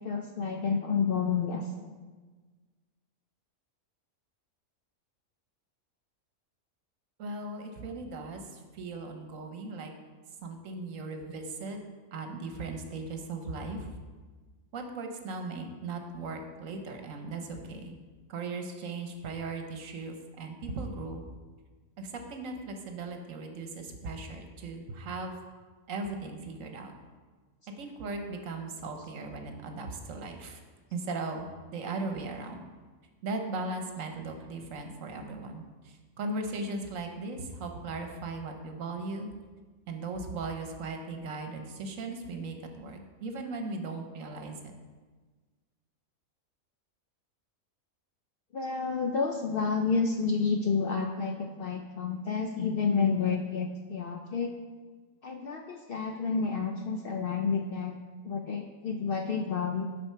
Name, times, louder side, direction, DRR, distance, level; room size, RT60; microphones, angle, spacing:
voice 1, 0.0-1.9 48.5-54.5 55.2-58.0 58.2-59.8, left 5 dB, 65° left, 4 dB, 0.5 m, -30 dB
voice 2, 7.2-9.9 10.4-11.8 12.1-13.9 14.7-18.0 18.3-21.2 22.0-25.4 25.9-26.9 27.8-30.6 30.9-32.6 33.2-39.3 39.9-44.7, right 3 dB, 75° right, 5 dB, 1.2 m, -38 dB
7.7 x 4.4 x 5.6 m, 1.4 s
omnidirectional pair, 1.4 m